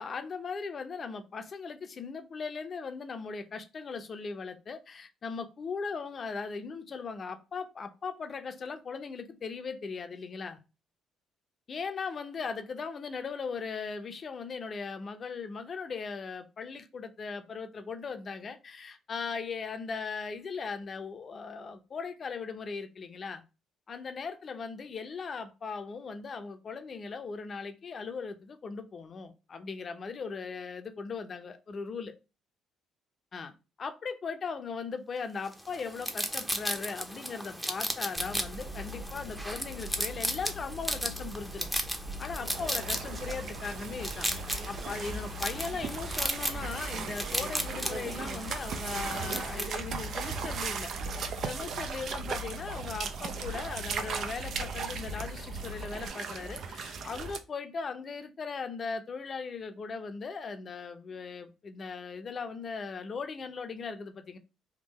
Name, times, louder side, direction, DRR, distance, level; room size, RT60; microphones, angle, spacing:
voice 1, 0.0-10.6 11.7-23.4 23.9-32.1 33.3-41.7 42.2-44.3 44.7-50.9 51.2-64.4, left 5 dB, 45° left, 0.6 m, -38 dB
sound 1, 35.5-49.7, equal, 5° right, 0.7 m, -36 dB
sound 2, 38.1-56.1, left 1 dB, 30° right, 1.3 m, -43 dB
sound 3, 42.4-57.4, right 5 dB, 60° right, 0.5 m, -38 dB
3.6 x 2.4 x 2.9 m
supercardioid pair, 80°, 0 cm